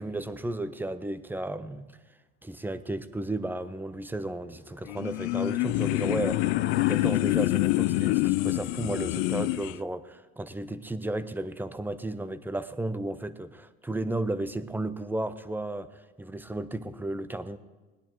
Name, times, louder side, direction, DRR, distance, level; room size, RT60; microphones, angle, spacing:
voice 1, 0.0-2.0 2.4-17.6, right 2 dB, 5° right, 0.6 m, -34 dB
sound 1, 4.2-8.9, left 9 dB, 35° left, 0.8 m, -44 dB
sound 2, 4.9-9.8, left 19 dB, 80° left, 0.5 m, -26 dB
18.5 x 10.5 x 4.5 m
supercardioid pair, 110°, 32 cm